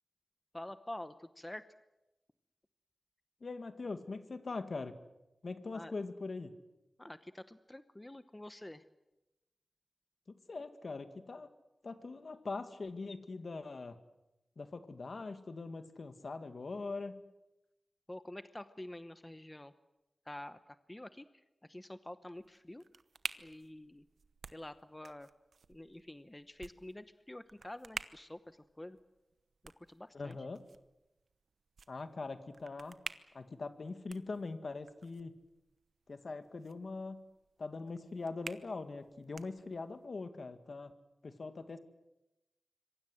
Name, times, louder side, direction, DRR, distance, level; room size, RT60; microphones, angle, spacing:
voice 1, 0.5-1.6 5.7-5.9 7.0-8.8 18.1-19.7 20.2-22.8 23.4-24.0 24.5-25.3 25.7-29.0 29.8-30.4, left 1 dB, 15° left, 11 dB, 1.0 m, -48 dB
voice 2, 3.4-5.0 5.4-6.6 10.5-11.5 11.8-14.0 14.6-17.2 30.1-30.6 31.9-33.0 33.3-35.3 36.1-37.2 37.6-40.9 41.2-41.8, left 3 dB, 60° left, 9 dB, 2.0 m, -42 dB
sound 1, 22.3-40.1, right 5 dB, 85° right, 1.0 m, -51 dB
26.0 x 23.5 x 7.8 m, 0.98 s
wide cardioid pair, 75°, 0 cm